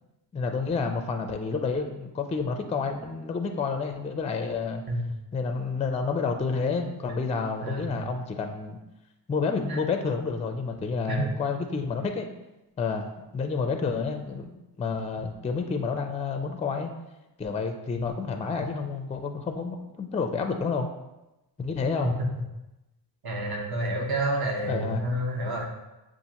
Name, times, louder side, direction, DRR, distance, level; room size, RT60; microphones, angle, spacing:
voice 1, 0.3-4.8 5.3-8.8 9.3-12.3 12.8-16.9 17.4-20.9 21.6-22.2 24.7-25.0, left 4 dB, 15° left, 5 dB, 0.3 m, -29 dB
voice 2, 7.6-7.9 9.7-9.8 11.1-11.3 17.9-18.0 23.2-25.7, right 1 dB, 55° right, 0 dB, 1.0 m, -29 dB
6.6 x 2.5 x 2.9 m, 0.97 s
cardioid pair, 85°, 44 cm